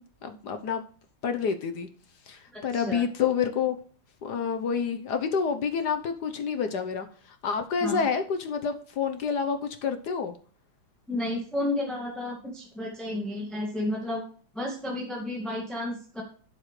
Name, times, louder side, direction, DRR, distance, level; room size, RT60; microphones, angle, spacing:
voice 1, 0.2-0.8 1.2-1.9 2.3-3.8 4.2-7.1 7.4-10.3, left 6 dB, 60° left, 8 dB, 1.4 m, -28 dB
voice 2, 2.5-3.0 7.8-8.0 11.1-14.2 14.5-16.2, left 1 dB, ahead, -2 dB, 1.8 m, -32 dB
12.0 x 7.5 x 3.2 m, 0.42 s
omnidirectional pair, 2.3 m